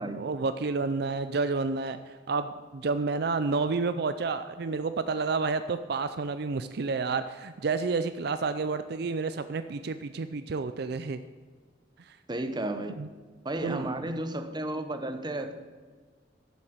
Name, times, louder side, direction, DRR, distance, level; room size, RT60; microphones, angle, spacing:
voice 1, 0.2-11.2 12.0-12.2 13.0-13.1 13.6-14.0, right 4 dB, 60° right, 11 dB, 0.5 m, -30 dB
voice 2, 12.3-13.0 13.4-15.5, right 1 dB, 25° right, 8 dB, 0.9 m, -33 dB
11.5 x 7.2 x 8.0 m, 1.5 s
head